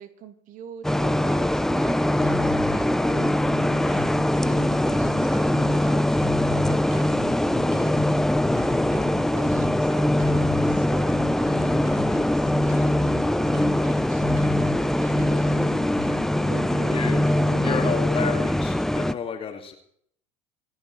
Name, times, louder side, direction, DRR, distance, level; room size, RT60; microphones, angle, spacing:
voice 1, 0.0-8.5 8.9-13.3 13.8-14.3 14.6-15.8 16.4-17.8, right 8 dB, 50° right, 9 dB, 2.4 m, -44 dB
sound 1, 0.8-19.1, left 1 dB, ahead, 0.6 m, -22 dB
sound 2, 2.2-5.8 6.2-9.8 10.2-18.0, left 6 dB, 70° left, 3.4 m, -38 dB
sound 3, 4.1-18.9, right 3 dB, 75° right, 5.1 m, -55 dB
voice 2, 17.6-19.7, left 6 dB, 35° left, 4 dB, 2.4 m, -30 dB
26.0 x 9.4 x 4.7 m, 0.65 s
hypercardioid pair, 70°, 17 cm